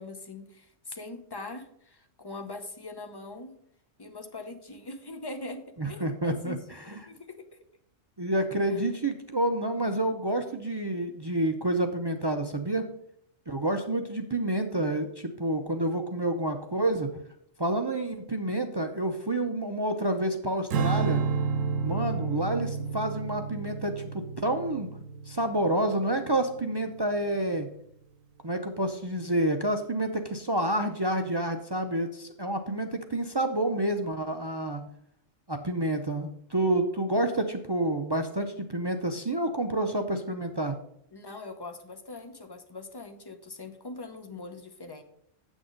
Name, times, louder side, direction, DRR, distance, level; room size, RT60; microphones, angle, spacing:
voice 1, 0.0-3.5 4.0-5.6 5.9-7.6 8.7-8.8 41.1-45.0, left 2 dB, 25° left, 7 dB, 0.7 m, -42 dB
voice 2, 5.8-6.6 8.2-12.9 13.5-17.1 17.6-21.2 21.8-24.9 25.3-27.7 28.4-34.8 35.5-40.8, right 1 dB, 35° right, 6 dB, 0.4 m, -29 dB
Strum, 20.7-27.1, right 5 dB, 85° right, 1.1 m, -31 dB
8.2 x 6.2 x 5.1 m, 0.70 s
omnidirectional pair, 1.3 m